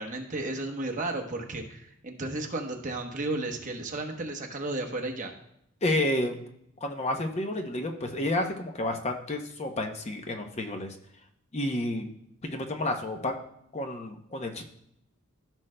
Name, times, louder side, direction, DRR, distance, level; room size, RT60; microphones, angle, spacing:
voice 1, 0.0-5.3, right 2 dB, 35° right, 2 dB, 1.0 m, -33 dB
voice 2, 5.8-6.4 6.8-10.9 11.5-12.1 12.4-13.3 13.7-14.6, left 1 dB, 30° left, 4 dB, 0.7 m, -30 dB
15.0 x 6.1 x 2.2 m, 0.77 s
head